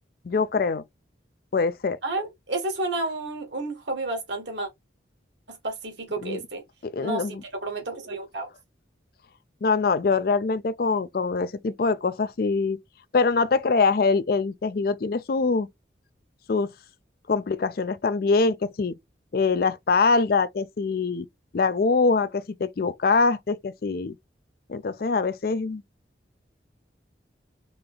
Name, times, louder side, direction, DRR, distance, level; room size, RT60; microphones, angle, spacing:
voice 1, 0.3-0.8 1.5-2.0 6.2-6.4 6.9-7.3 9.6-12.8 13.1-15.7 16.5-16.7 17.3-19.0 19.3-21.3 21.5-24.2 24.7-25.8, left 4 dB, 50° left, 0.4 m, -23 dB
voice 2, 2.0-4.7 5.5-6.6 7.0-7.4 7.6-8.5, right 2 dB, 75° right, 1.6 m, -31 dB
3.9 x 2.8 x 3.2 m
head